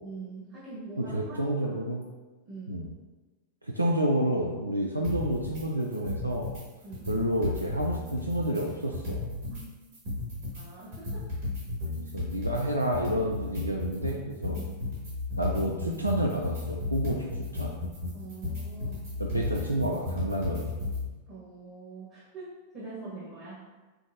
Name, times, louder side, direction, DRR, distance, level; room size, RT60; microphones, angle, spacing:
voice 1, 0.0-1.4 1.6-1.8 2.4-2.8 6.8-7.1 9.5-9.6 10.5-11.2 14.5-14.6 18.1-19.0 21.3-23.5, right 3 dB, 40° right, -8 dB, 1.2 m, -43 dB
voice 2, 1.1-2.0 2.7-2.9 3.6-6.5 7.1-9.2 12.1-14.6 15.4-17.8 19.2-20.7, right 1 dB, 90° right, -1 dB, 0.3 m, -29 dB
sound 1, 5.0-5.6 5.9-6.6 6.9-9.6 9.9-21.1, left 3 dB, 60° right, 1.5 m, -34 dB
5.5 x 2.0 x 2.7 m, 1.2 s
figure-of-eight pair, 90°, 0 cm